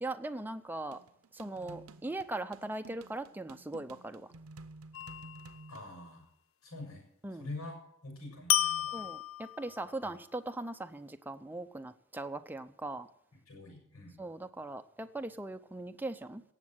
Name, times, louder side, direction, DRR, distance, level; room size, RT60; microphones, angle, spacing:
voice 1, 0.0-1.0 1.4-4.2 7.2-7.4 8.9-13.1 14.2-16.4, right 2 dB, 10° right, 0.6 m, -40 dB
sound 1, 0.9-5.9, right 3 dB, 85° right, 0.8 m, -52 dB
sound 2, 4.9-5.6 8.5-9.9, left 11 dB, 70° left, 0.6 m, -32 dB
voice 2, 5.7-6.3 6.6-7.0 7.3-9.1 10.0-10.1 13.5-14.2, left 2 dB, 85° left, 7.1 m, -45 dB
17.0 x 7.4 x 7.8 m
head